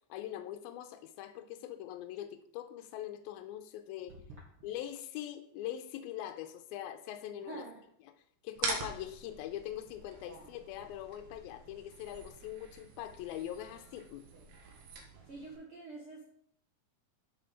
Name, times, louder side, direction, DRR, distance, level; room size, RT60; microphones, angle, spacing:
voice 1, 0.1-4.1 4.6-7.6 8.4-14.3, left 12 dB, 85° left, 7 dB, 2.5 m, -42 dB
voice 2, 3.9-4.7 7.4-7.9 10.2-10.5 14.3-14.5 15.2-16.2, right 3 dB, 60° right, -2 dB, 1.4 m, -48 dB
sound 1, 8.6-15.6, right 4 dB, 85° right, 3.4 m, -44 dB
7.6 x 6.9 x 5.2 m, 0.67 s
omnidirectional pair, 4.3 m